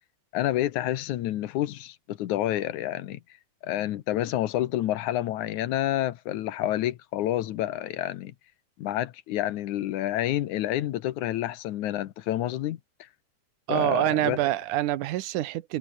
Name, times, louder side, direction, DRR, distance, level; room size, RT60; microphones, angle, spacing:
voice 1, 0.3-3.2 3.6-8.3 8.8-12.8 13.7-14.4, left 13 dB, 75° left, 2.5 m, -28 dB
voice 2, 13.7-15.8, right 14 dB, 85° right, 2.5 m, -26 dB
omnidirectional pair, 3.5 m